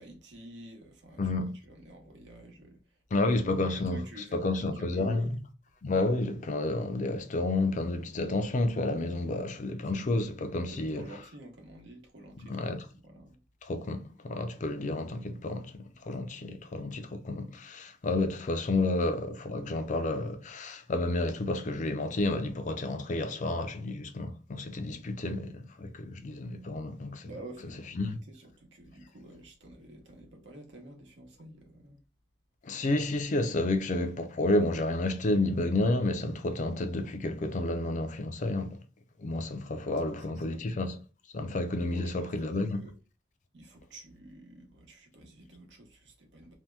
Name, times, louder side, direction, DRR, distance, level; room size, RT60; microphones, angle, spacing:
voice 1, 0.0-1.2 1.7-2.8 3.2-3.3 3.7-4.5 4.8-5.3 10.7-13.4 16.4-16.5 27.2-32.0 39.9-40.8 41.9-42.3 42.7-42.9 43.5-46.6, right 1 dB, 80° right, 0.9 m, -49 dB
voice 2, 1.2-1.5 3.1-4.0 4.3-5.3 5.8-11.2 12.4-12.9 13.6-27.3 27.9-28.2 32.6-38.8 39.2-41.0 41.3-42.9, left 2 dB, 45° left, 0.4 m, -30 dB
2.7 x 2.1 x 3.3 m
head